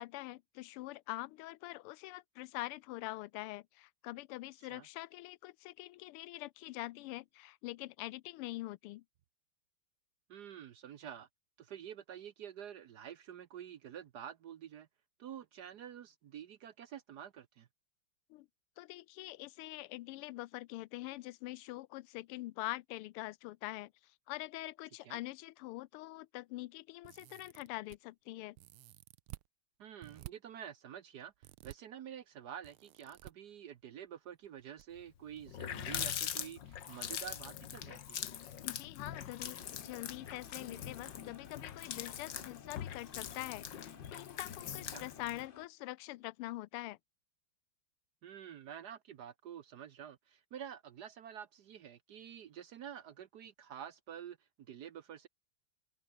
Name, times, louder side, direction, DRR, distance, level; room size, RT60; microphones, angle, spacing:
voice 1, 0.0-9.0 18.3-18.5 18.8-28.6 38.6-47.0, left 18 dB, 90° left, 1.5 m, -44 dB
voice 2, 10.3-11.3 11.6-14.9 15.2-17.7 25.0-25.2 29.8-31.3 31.6-38.2 44.9-45.0 48.2-54.4 54.7-55.3, right 9 dB, 60° right, 1.1 m, -48 dB
sound 1, 27.0-28.0 28.6-29.5 30.0-30.3 31.4-31.8 32.6-33.3 34.4-34.9 35.1-35.2 36.4-36.5 36.9-37.0, right 16 dB, 80° right, 1.6 m, -52 dB
Water tap faucet, 35.0-35.1 35.4-45.5, left 9 dB, 60° left, 1.8 m, -43 dB
sound 2, 39.6-45.7, left 6 dB, 35° left, 0.9 m, -57 dB
open air
omnidirectional pair, 2.4 m